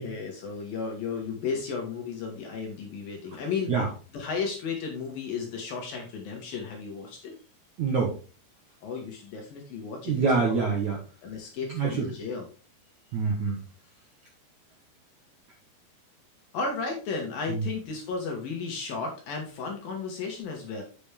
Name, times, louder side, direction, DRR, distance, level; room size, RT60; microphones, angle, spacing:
voice 1, 0.0-3.7 4.1-7.3 8.8-10.6 11.2-12.5 16.5-20.8, left 5 dB, 60° left, 1 dB, 2.7 m, -34 dB
voice 2, 7.8-8.1 10.1-11.0 11.7-12.1 13.1-13.6, right 5 dB, 65° right, -1 dB, 2.0 m, -25 dB
8.5 x 6.2 x 3.4 m, 0.36 s
omnidirectional pair, 5.5 m